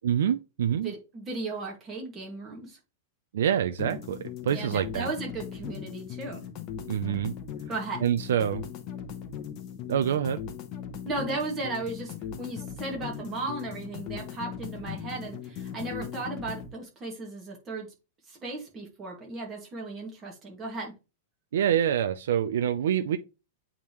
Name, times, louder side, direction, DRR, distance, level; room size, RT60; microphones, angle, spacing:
voice 1, 0.0-0.9 3.3-5.1 6.9-7.3 8.0-8.6 9.9-10.4 21.5-23.2, right 9 dB, 85° right, 0.5 m, -26 dB
voice 2, 0.7-2.8 4.5-6.5 7.7-8.0 11.1-17.9 18.3-20.9, right 2 dB, 15° right, 2.0 m, -36 dB
sound 1, 3.8-16.7, left 8 dB, 30° left, 0.9 m, -39 dB
8.6 x 3.7 x 3.1 m
supercardioid pair, 175°, 0 cm